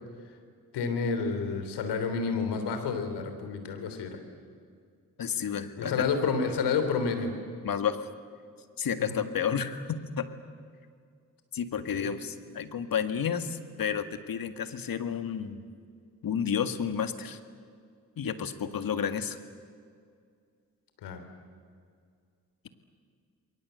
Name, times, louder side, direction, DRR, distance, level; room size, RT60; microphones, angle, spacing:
voice 1, 0.7-4.2 5.8-7.3 9.0-9.2 11.9-12.1 21.0-21.2, left 5 dB, 80° left, 7 dB, 3.4 m, -29 dB
voice 2, 5.2-6.1 7.6-8.1 8.8-10.3 11.5-15.6 16.2-17.4 18.2-19.4, left 7 dB, 55° left, 9 dB, 1.9 m, -31 dB
29.0 x 22.0 x 8.1 m, 2.2 s
hypercardioid pair, 45°, 40 cm